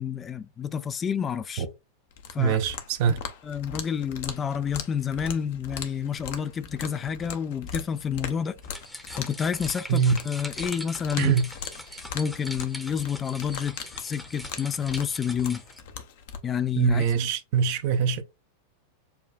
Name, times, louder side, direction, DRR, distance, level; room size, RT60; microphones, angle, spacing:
voice 1, 0.0-1.7 2.3-2.6 3.4-8.6 9.2-11.3 12.1-15.6 16.4-17.0, left 7 dB, 20° left, 0.3 m, -29 dB
sound 1, 2.1-16.4, left 7 dB, 55° left, 0.7 m, -40 dB
voice 2, 2.4-3.2 9.9-10.1 11.2-11.5 16.8-18.2, right 7 dB, 50° right, 0.6 m, -23 dB
sound 2, 8.6-15.8, equal, ahead, 0.8 m, -41 dB
7.0 x 2.3 x 2.3 m
figure-of-eight pair, 90°, 0 cm